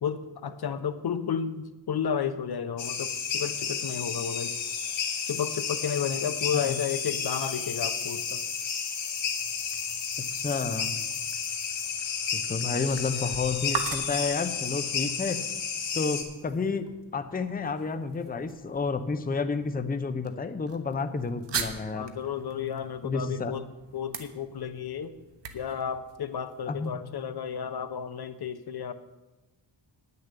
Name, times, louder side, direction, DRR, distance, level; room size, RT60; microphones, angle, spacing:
voice 1, 0.0-4.6 5.3-8.4 21.9-23.7 23.9-25.1 25.5-28.9, left 7 dB, 55° left, 12 dB, 0.7 m, -32 dB
sound 1, 2.8-16.2, left 6 dB, 75° left, 1.8 m, -32 dB
sound 2, 9.1-26.9, right 6 dB, 65° right, 1.2 m, -43 dB
voice 2, 10.3-10.9 12.3-15.4 15.9-22.1 23.0-23.6 26.7-27.0, left 4 dB, 20° left, 10 dB, 0.7 m, -30 dB
10.0 x 6.7 x 8.3 m, 1.1 s
wide cardioid pair, 100°, 46 cm